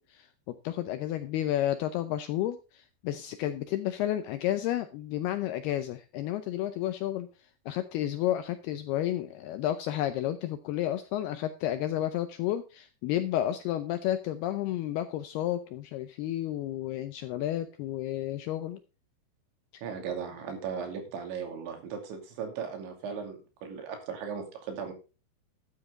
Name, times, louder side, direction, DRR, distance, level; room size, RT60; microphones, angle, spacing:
voice 1, 0.0-7.3 7.7-18.8 19.7-19.8, left 12 dB, 80° left, 10 dB, 2.3 m, -31 dB
voice 2, 19.8-24.9, right 6 dB, 75° right, 5 dB, 4.9 m, -37 dB
13.0 x 9.5 x 3.8 m, 0.32 s
omnidirectional pair, 5.3 m